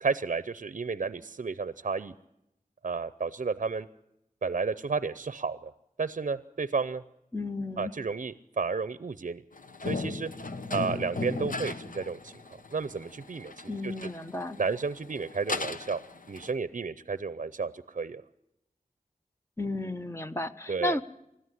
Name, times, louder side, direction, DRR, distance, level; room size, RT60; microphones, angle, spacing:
voice 1, 0.0-2.1 2.8-3.9 4.4-5.7 6.0-7.0 7.8-9.4 9.8-10.3 10.7-12.3 12.7-13.9 14.6-16.0 16.3-18.2 20.7-21.0, right 4 dB, 60° right, 16 dB, 0.7 m, -32 dB
voice 2, 7.3-7.9 13.7-14.6 19.6-21.0, left 2 dB, 20° left, 10 dB, 1.0 m, -33 dB
sound 1, 9.5-16.5, left 3 dB, 70° left, 1.1 m, -37 dB
20.5 x 13.5 x 9.9 m, 0.83 s
wide cardioid pair, 60°, 15 cm